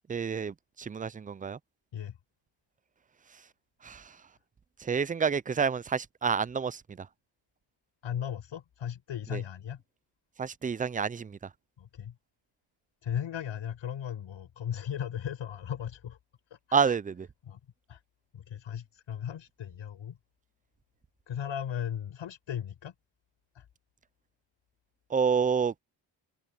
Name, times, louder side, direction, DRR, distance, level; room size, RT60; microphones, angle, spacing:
voice 1, 0.1-1.6 3.8-4.2 4.8-7.1 9.3-9.4 10.4-11.4 16.7-17.3 25.1-25.8, right 6 dB, 20° right, 0.3 m, -29 dB
voice 2, 8.0-9.8 11.8-12.1 13.0-16.2 16.5-17.0 17.5-17.6 17.9-18.0 18.3-20.2 21.3-22.9 23.5-23.7, left 9 dB, 85° left, 5.3 m, -37 dB
wide cardioid pair, 115°, 46 cm